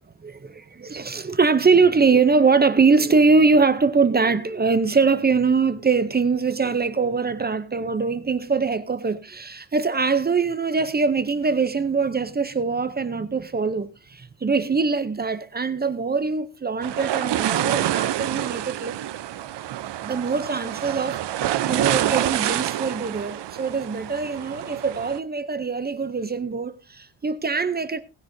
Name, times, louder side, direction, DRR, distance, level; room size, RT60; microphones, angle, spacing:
voice 1, 0.2-18.9 20.0-28.0, right 4 dB, 20° right, 0.7 m, -22 dB
sound 1, 16.8-25.2, right 12 dB, 70° right, 0.8 m, -27 dB
18.5 x 10.0 x 2.7 m
wide cardioid pair, 175°, 43 cm